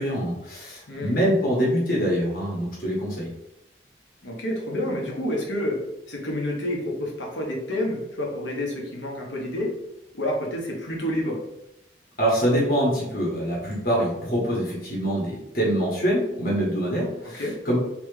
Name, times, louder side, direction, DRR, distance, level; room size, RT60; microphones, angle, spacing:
voice 1, 0.0-3.3 12.2-17.8, equal, 50° left, -4 dB, 1.2 m, -24 dB
voice 2, 0.9-1.2 4.2-5.8 6.1-9.7 10.1-11.4 17.3-17.5, left 1 dB, 80° left, -2 dB, 1.1 m, -29 dB
3.4 x 3.1 x 3.2 m, 0.84 s
head